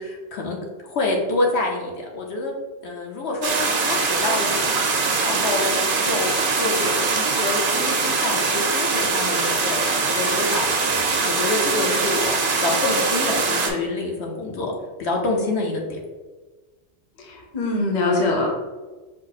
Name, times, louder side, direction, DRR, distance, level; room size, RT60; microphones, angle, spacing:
voice 1, 0.0-2.5 2.8-4.8 5.2-6.3 6.6-14.7 15.0-16.0, left 2 dB, 65° left, -1 dB, 0.9 m, -27 dB
sound 1, 3.4-13.7, right 4 dB, 55° right, 0.7 m, -22 dB
voice 2, 17.2-18.5, left 2 dB, 40° left, 0 dB, 0.8 m, -22 dB
5.5 x 2.0 x 4.0 m, 1.3 s
omnidirectional pair, 1.2 m